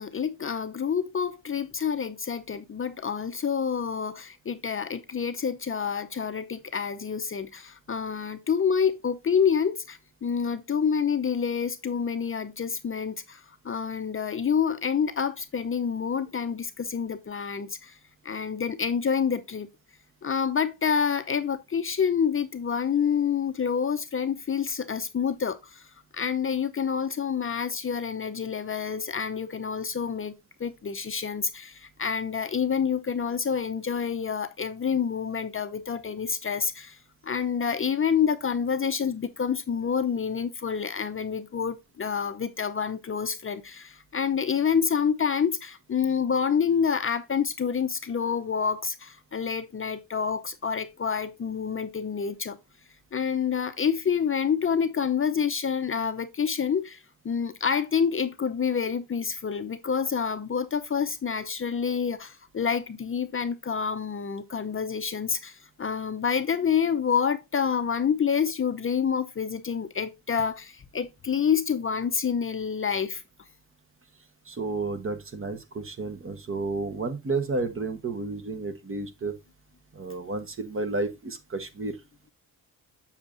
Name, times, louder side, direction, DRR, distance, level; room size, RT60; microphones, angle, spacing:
voice 1, 0.0-17.9 18.2-19.7 20.2-25.9 26.1-30.3 30.6-37.0 37.2-52.6 53.1-73.2, left 7 dB, 35° left, 0.6 m, -28 dB
voice 2, 74.5-79.3 79.9-81.9, right 3 dB, 35° right, 1.1 m, -31 dB
7.2 x 7.1 x 2.5 m
cardioid pair, 105°, 38 cm